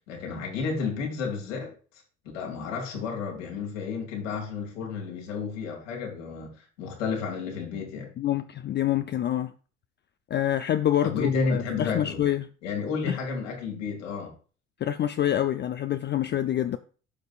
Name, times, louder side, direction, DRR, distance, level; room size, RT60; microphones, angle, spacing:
voice 1, 0.1-1.7 2.3-8.1 11.0-12.2 12.6-14.3, left 5 dB, 75° left, 2.3 m, -31 dB
voice 2, 8.2-9.5 10.3-12.5 13.1-13.2 14.8-16.8, left 11 dB, 30° left, 0.4 m, -26 dB
11.5 x 5.2 x 2.4 m
hypercardioid pair, 55°, 38 cm